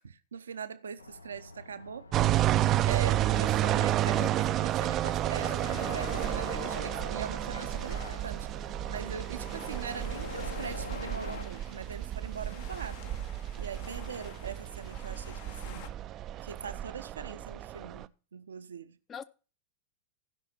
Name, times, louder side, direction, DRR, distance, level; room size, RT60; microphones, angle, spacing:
voice 1, 0.0-2.1 2.9-8.5 8.9-13.2 13.6-15.9 16.4-19.0, right 7 dB, 70° right, 0.7 m, -42 dB
sound 1, 1.0-11.4, left 3 dB, 75° left, 0.7 m, -45 dB
sound 2, 2.1-18.0, right 13 dB, 35° right, 0.4 m, -31 dB
voice 2, 3.6-4.3 6.5-6.7 19.1-19.2, left 7 dB, 25° left, 0.7 m, -43 dB
sound 3, 4.7-15.9, left 10 dB, 50° left, 1.0 m, -50 dB
15.0 x 5.7 x 5.7 m
figure-of-eight pair, 90°, 0 cm